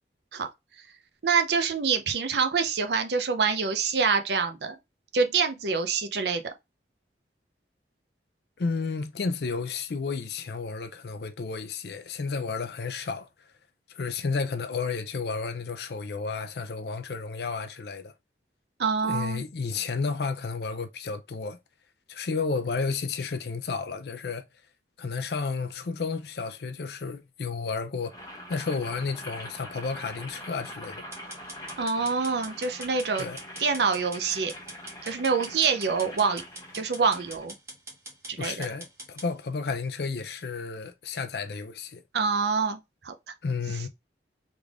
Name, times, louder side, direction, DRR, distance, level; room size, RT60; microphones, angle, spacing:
voice 1, 1.2-4.8 5.1-6.4 18.8-19.4 31.8-33.3 33.6-34.5 35.0-36.4 36.7-37.5 38.3-38.7 42.1-42.8 43.0-43.1, right 5 dB, 70° right, 0.6 m, -26 dB
voice 2, 8.6-13.3 13.9-18.1 19.0-21.6 22.1-24.4 25.0-28.1 28.5-31.0 33.2-33.4 38.4-42.0 43.4-43.9, left 4 dB, 65° left, 0.5 m, -32 dB
Boiling, 28.0-37.4, left 1 dB, 20° left, 1.0 m, -43 dB
sound 1, 31.1-39.3, right 1 dB, 15° right, 1.3 m, -44 dB
3.6 x 3.3 x 2.4 m
head